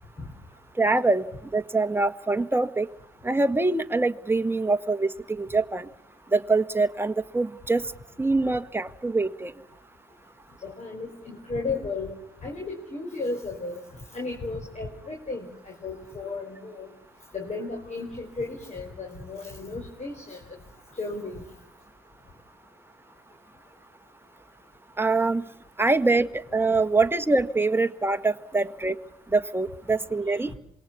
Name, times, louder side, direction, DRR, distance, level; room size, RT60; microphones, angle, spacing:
voice 1, 0.8-1.3 1.5-2.9 3.2-5.9 6.3-7.8 8.2-9.5 25.0-25.4 25.8-29.0 29.3-30.5, right 3 dB, 10° right, 9 dB, 1.5 m, -24 dB
voice 2, 10.6-12.1 12.4-13.8 14.1-16.9 17.3-20.4 20.9-21.4 30.5-30.6, left 3 dB, 35° left, 1 dB, 5.0 m, -34 dB
26.5 x 22.0 x 7.0 m, 0.76 s
hypercardioid pair, 40°, 19 cm